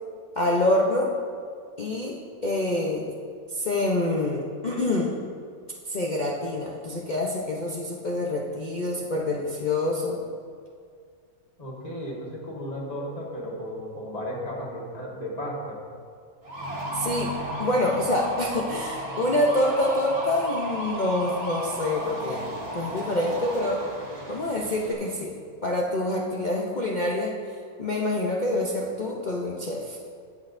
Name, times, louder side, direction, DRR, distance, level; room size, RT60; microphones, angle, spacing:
voice 1, 0.4-1.1 1.8-2.1 2.4-3.1 3.5-5.2 5.9-10.2 16.9-17.3 17.6-23.8 24.3-25.3 25.6-27.3 27.8-30.0, left 1 dB, 40° left, -3 dB, 0.7 m, -26 dB
voice 2, 11.6-15.8, equal, 25° left, -4 dB, 1.6 m, -34 dB
sound 1, 16.4-24.9, right 1 dB, 40° right, 2.0 m, -34 dB
18.5 x 6.3 x 2.6 m, 2.1 s
omnidirectional pair, 1.6 m